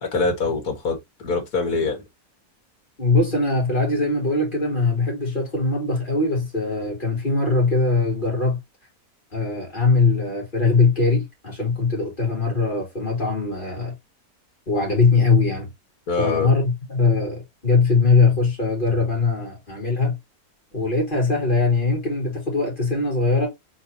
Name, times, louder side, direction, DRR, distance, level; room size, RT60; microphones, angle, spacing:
voice 1, 0.0-2.0 16.1-16.5, left 3 dB, 75° left, 1.9 m, -24 dB
voice 2, 3.0-8.6 9.3-13.9 14.7-15.7 16.2-20.2 20.7-23.5, left 3 dB, 30° left, 2.9 m, -21 dB
4.3 x 3.9 x 2.8 m
omnidirectional pair, 1.6 m